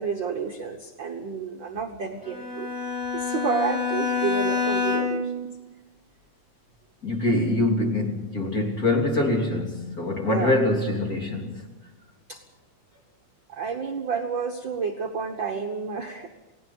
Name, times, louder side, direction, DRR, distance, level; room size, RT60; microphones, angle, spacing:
voice 1, 0.0-2.7 3.1-5.5 10.3-10.6 12.3-12.4 13.5-16.5, right 5 dB, 50° right, 3 dB, 1.6 m, -30 dB
Bowed string instrument, 2.2-5.4, left 5 dB, 45° left, 7.0 m, -27 dB
voice 2, 7.0-11.6, left 2 dB, 30° left, 1 dB, 3.6 m, -24 dB
29.5 x 18.0 x 5.6 m, 1.1 s
omnidirectional pair, 3.5 m